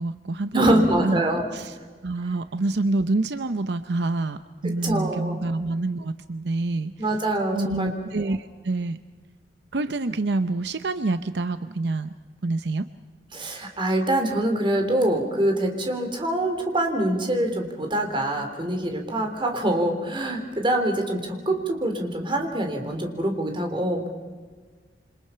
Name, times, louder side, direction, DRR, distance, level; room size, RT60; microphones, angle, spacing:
voice 1, 0.0-1.2 1.5-1.8 2.0-6.9 7.5-9.0 9.7-12.1 12.4-12.9, right 2 dB, 70° right, 11 dB, 0.7 m, -27 dB
voice 2, 0.5-1.4 4.8-5.4 7.0-7.9 8.2-8.4 13.3-24.1, right 1 dB, 30° right, 4 dB, 3.6 m, -24 dB
28.0 x 25.5 x 5.7 m, 1.5 s
head